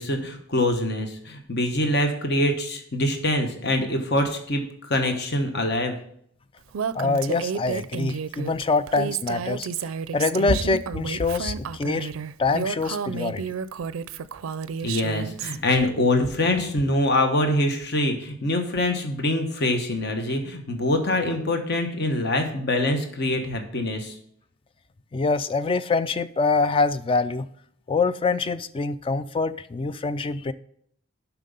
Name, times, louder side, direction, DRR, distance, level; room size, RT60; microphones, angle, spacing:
voice 1, 0.0-6.0 14.8-24.2, left 1 dB, 55° left, 5 dB, 1.0 m, -24 dB
Female speech woman speaking, 6.7-15.6, right 6 dB, 85° right, 0.4 m, -31 dB
voice 2, 6.9-9.7 10.1-12.1 12.4-13.4 25.1-27.5 27.9-30.5, left 3 dB, 25° left, 14 dB, 0.3 m, -25 dB
7.5 x 6.0 x 5.3 m, 0.67 s
head